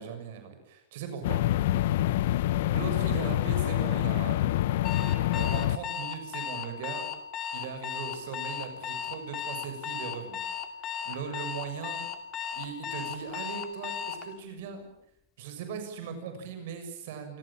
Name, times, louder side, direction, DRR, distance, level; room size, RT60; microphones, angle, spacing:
voice 1, 0.0-1.7 2.7-4.6 5.4-7.1 7.5-10.4 11.1-12.0 12.5-14.9 15.4-17.4, right 6 dB, 55° right, 7 dB, 7.1 m, -39 dB
sound 1, 1.2-5.8, left 14 dB, 55° left, 1.1 m, -26 dB
Alarm, 4.8-14.2, left 9 dB, 20° left, 2.5 m, -35 dB
28.5 x 25.5 x 7.6 m, 0.73 s
supercardioid pair, 170°, 0 cm